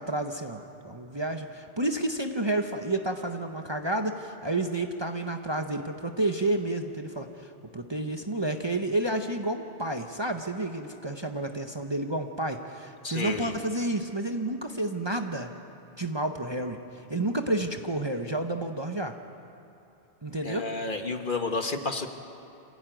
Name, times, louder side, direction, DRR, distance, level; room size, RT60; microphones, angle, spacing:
voice 1, 0.0-15.5 16.0-16.8 17.1-19.2 20.2-20.7, right 1 dB, 25° right, 4 dB, 1.0 m, -30 dB
voice 2, 13.0-13.6 20.4-22.1, left 3 dB, 45° left, 5 dB, 1.5 m, -31 dB
27.0 x 16.0 x 9.2 m, 2.9 s
omnidirectional pair, 1.2 m